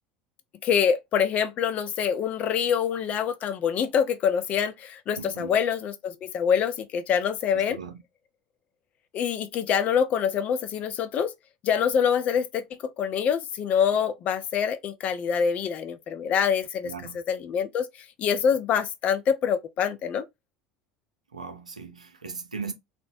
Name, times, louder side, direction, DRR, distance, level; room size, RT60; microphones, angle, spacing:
voice 1, 0.6-7.8 9.1-11.3 11.6-20.3, left 7 dB, 40° left, 0.5 m, -25 dB
voice 2, 5.2-5.6 7.5-8.0 16.8-17.2 21.3-22.7, right 5 dB, 80° right, 0.5 m, -38 dB
2.9 x 2.1 x 2.4 m
figure-of-eight pair, 70°, 4 cm